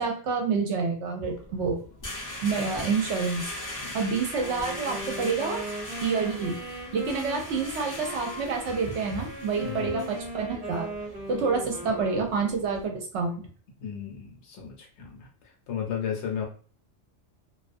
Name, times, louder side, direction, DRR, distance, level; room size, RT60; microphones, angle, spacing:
voice 1, 0.0-1.8 2.4-3.4 3.9-5.6 6.0-6.6 6.9-10.9 11.3-13.4, right 5 dB, 70° right, 2 dB, 0.8 m, -28 dB
sound 1, 1.2-12.8, left 1 dB, 30° left, 0.3 m, -40 dB
Wind instrument woodwind instrument, 4.3-12.9, equal, 35° right, 0.9 m, -39 dB
voice 2, 9.6-10.0 13.8-16.5, left 8 dB, 65° left, 1 dB, 0.9 m, -34 dB
2.3 x 2.2 x 2.5 m, 0.41 s
omnidirectional pair, 1.3 m